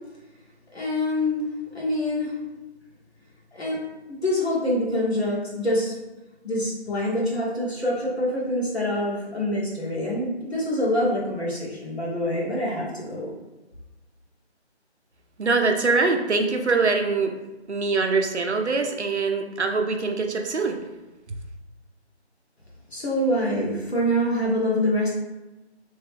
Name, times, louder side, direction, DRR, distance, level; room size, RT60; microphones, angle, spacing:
voice 1, 0.7-2.3 3.5-3.8 4.1-5.9 6.4-13.3 22.9-25.1, left 1 dB, 65° left, -5 dB, 1.2 m, -25 dB
voice 2, 15.4-17.3 17.7-20.8, right 4 dB, 75° right, 4 dB, 0.6 m, -23 dB
3.0 x 2.2 x 3.2 m, 1.0 s
figure-of-eight pair, 170°, 34 cm